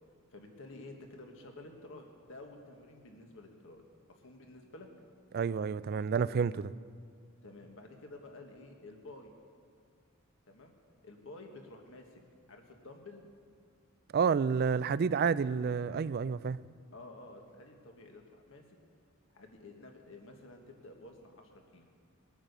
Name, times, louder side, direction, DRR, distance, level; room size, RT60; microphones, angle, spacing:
voice 1, 0.3-3.8 4.1-4.9 7.4-9.3 10.5-10.8 11.0-12.2 12.5-13.2 16.9-18.6 19.3-21.9, left 2 dB, 65° left, 1.5 m, -51 dB
voice 2, 5.3-6.7 14.1-16.6, right 6 dB, 45° right, 0.3 m, -29 dB
21.0 x 9.0 x 6.7 m
head